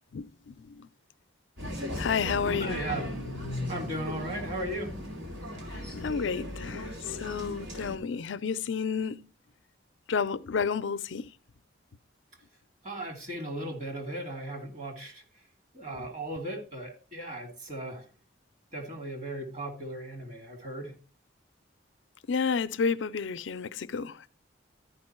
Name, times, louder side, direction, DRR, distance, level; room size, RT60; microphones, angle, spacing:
voice 1, 0.1-0.9 2.0-2.8 5.9-9.3 10.1-11.3 22.3-24.3, left 5 dB, 80° left, 0.5 m, -31 dB
sound 1, 1.6-8.0, left 1 dB, 70° right, 2.8 m, -37 dB
voice 2, 2.6-3.2 3.7-5.0 12.8-15.2 15.7-18.1 18.7-20.9, right 1 dB, 40° right, 2.6 m, -37 dB
13.0 x 5.3 x 4.3 m
head